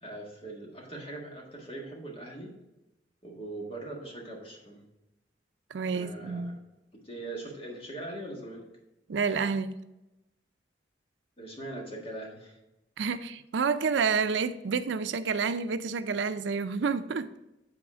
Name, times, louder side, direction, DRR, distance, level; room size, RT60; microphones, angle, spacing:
voice 1, 0.0-2.5 3.2-4.8 5.9-6.5 7.0-8.6 11.4-12.6, right 2 dB, 35° left, -1 dB, 1.7 m, -41 dB
voice 2, 5.7-6.6 9.1-9.8 13.0-17.3, right 5 dB, 90° right, 12 dB, 0.4 m, -29 dB
8.6 x 4.2 x 4.9 m, 0.94 s
head